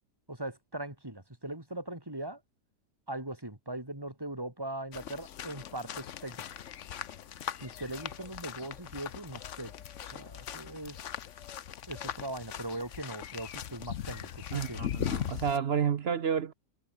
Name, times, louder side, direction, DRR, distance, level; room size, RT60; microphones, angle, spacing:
voice 1, 0.3-2.4 3.1-6.4 7.6-9.7 10.1-11.0 11.9-14.8, right 1 dB, 15° right, 3.5 m, -40 dB
sound 1, 4.9-15.6, left 9 dB, 55° left, 1.0 m, -40 dB
voice 2, 14.5-16.5, right 7 dB, 55° right, 0.7 m, -30 dB
omnidirectional pair, 1.8 m